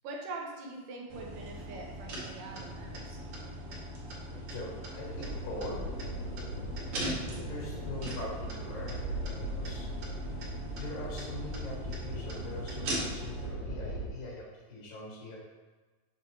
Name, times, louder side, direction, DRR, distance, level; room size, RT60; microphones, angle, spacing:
voice 1, 0.0-3.2 5.2-5.3, right 3 dB, 75° right, -1 dB, 2.4 m, -43 dB
sound 1, 1.1-13.5, right 1 dB, 55° right, 1.7 m, -41 dB
voice 2, 4.3-5.9 7.1-9.0 9.4-9.9 10.7-15.4, left 1 dB, 70° left, -4 dB, 3.2 m, -42 dB
sound 2, 5.0-14.1, equal, 90° left, 3.2 m, -39 dB
7.1 x 6.1 x 2.9 m, 1.3 s
omnidirectional pair, 4.1 m